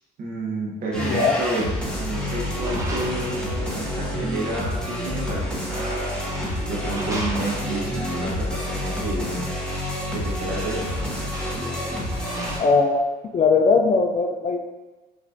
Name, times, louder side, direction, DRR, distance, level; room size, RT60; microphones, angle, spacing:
voice 1, 0.2-1.7 2.0-9.5 10.1-10.8, right 2 dB, 60° right, -3 dB, 1.4 m, -30 dB
sound 1, 0.9-12.6, left 1 dB, 5° left, 1.2 m, -28 dB
voice 2, 1.0-1.4 12.6-13.0 13.3-14.6, left 4 dB, 40° left, 5 dB, 0.4 m, -19 dB
sound 2, 1.8-4.3 5.5-8.1 10.1-10.2 10.5-13.0, right 1 dB, 20° right, 0.9 m, -37 dB
5.9 x 3.3 x 2.6 m, 1.2 s
cardioid pair, 110°, 17 cm